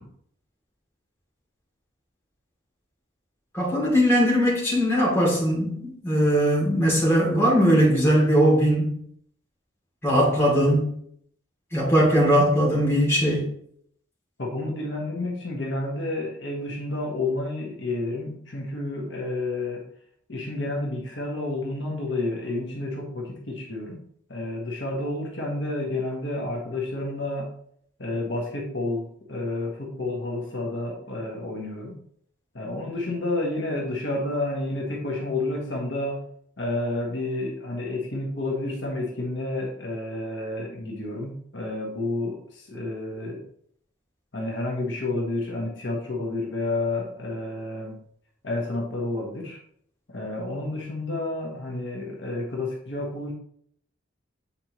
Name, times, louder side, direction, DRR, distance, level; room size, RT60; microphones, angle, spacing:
voice 1, 3.5-8.9 10.0-10.9 11.7-13.5, equal, 15° left, -6 dB, 2.6 m, -20 dB
voice 2, 14.4-19.9 20.3-24.0 24.3-27.5 28.0-32.0 32.5-36.2 36.6-43.4 44.3-48.0 48.4-49.6 50.1-53.3, left 2 dB, 65° left, -2 dB, 1.4 m, -30 dB
8.4 x 4.4 x 3.1 m, 0.65 s
head